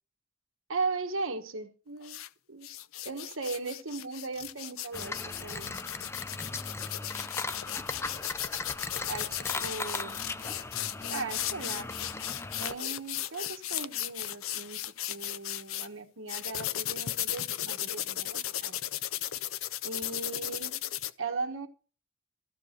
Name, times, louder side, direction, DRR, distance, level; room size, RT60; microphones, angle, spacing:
voice 1, 0.7-2.2 2.5-2.7 3.0-5.8 9.1-10.2 11.1-11.9 12.6-18.8 19.8-20.7 21.2-21.7, right 3 dB, 70° right, 1.3 m, -37 dB
sound 1, 2.0-2.3 2.6-15.9 16.3-21.1, left 13 dB, 85° left, 0.5 m, -36 dB
sound 2, 4.9-12.8, left 3 dB, 15° left, 0.4 m, -38 dB
13.5 x 4.8 x 6.5 m
head